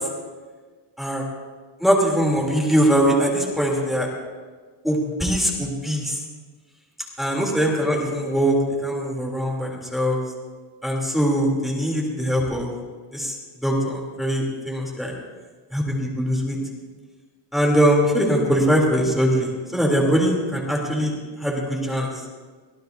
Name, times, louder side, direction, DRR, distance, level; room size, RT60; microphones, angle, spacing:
voice 1, 1.8-4.1 4.8-6.2 7.2-10.2 10.8-12.7 13.1-13.3 13.6-15.1 15.7-16.6 17.5-21.1 21.4-22.1, equal, ahead, -2 dB, 3.2 m, -22 dB
24.0 x 16.5 x 2.7 m, 1.4 s
cardioid pair, 145°, 47 cm